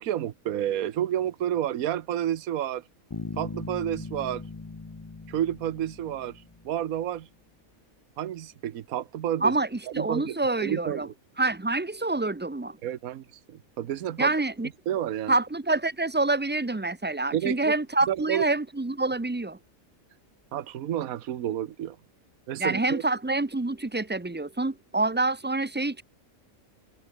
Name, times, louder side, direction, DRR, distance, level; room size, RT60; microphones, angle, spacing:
voice 1, 0.0-2.9 3.4-4.5 5.3-7.3 8.2-9.5 10.0-11.1 12.8-14.3 14.9-15.4 17.3-17.7 18.1-18.5 20.5-22.0 22.5-23.0, right 11 dB, 85° right, 1.3 m, -30 dB
Bass guitar, 3.1-6.8, left 3 dB, 20° left, 0.6 m, -40 dB
voice 2, 9.9-11.1 11.4-12.8 14.2-14.7 15.3-19.6 22.6-26.0, right 2 dB, 15° right, 0.3 m, -27 dB
omnidirectional pair, 1.5 m